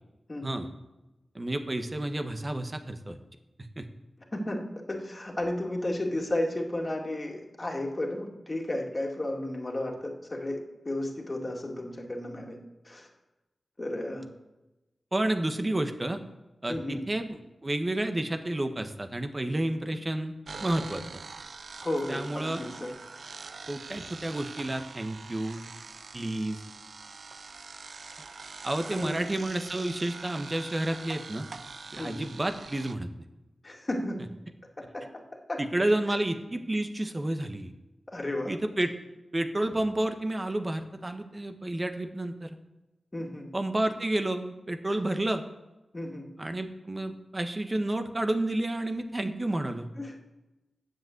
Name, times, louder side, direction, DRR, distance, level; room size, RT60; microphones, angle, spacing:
voice 1, 0.3-0.6 4.3-12.6 12.8-13.1 13.8-14.3 16.7-17.0 21.8-22.9 28.9-29.2 32.0-32.3 33.6-34.3 34.8-35.0 35.5-35.6 38.1-38.6 43.1-43.5 45.9-46.3 50.0-50.2, left 1 dB, 35° left, 0 dB, 2.4 m, -33 dB
voice 2, 1.3-3.2 3.8-3.9 15.1-16.2 16.6-20.3 20.6-21.2 22.1-22.6 23.7-25.6 26.1-26.6 28.6-31.5 31.9-33.1 35.6-37.7 38.5-38.9 39.3-42.6 43.5-45.4 46.4-49.9, right 1 dB, 30° right, 7 dB, 1.3 m, -30 dB
sound 1, 20.5-32.9, right 4 dB, 70° right, 0.6 m, -44 dB
9.1 x 7.9 x 8.0 m, 1.0 s
cardioid pair, 55°, 0 cm